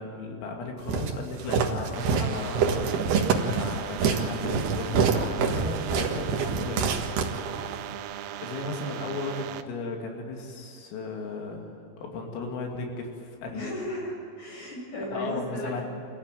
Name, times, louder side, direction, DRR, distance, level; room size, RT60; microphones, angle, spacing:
voice 1, 0.0-2.9 3.5-7.0 8.4-13.7 15.1-15.8, left 3 dB, 80° left, 1 dB, 5.1 m, -35 dB
Walk footsteps, 0.9-7.8, right 5 dB, 60° right, 3.2 m, -26 dB
sound 1, 1.9-9.6, right 11 dB, 90° right, 3.7 m, -38 dB
voice 2, 13.5-15.8, left 1 dB, 40° left, -2 dB, 9.0 m, -35 dB
27.0 x 16.0 x 9.2 m, 2.7 s
omnidirectional pair, 5.9 m